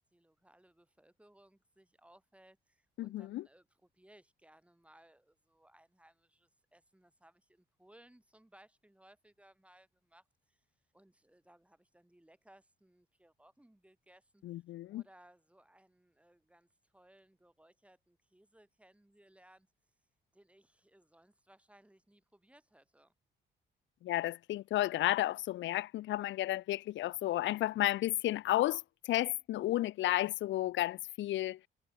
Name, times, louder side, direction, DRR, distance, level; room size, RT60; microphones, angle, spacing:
voice 1, 0.0-10.7 10.9-14.6 14.9-19.7 20.3-23.1, right 1 dB, 5° right, 3.8 m, -64 dB
voice 2, 3.0-3.4 14.4-15.0 24.0-31.6, left 15 dB, 70° left, 0.5 m, -32 dB
cardioid pair, 90°, 20 cm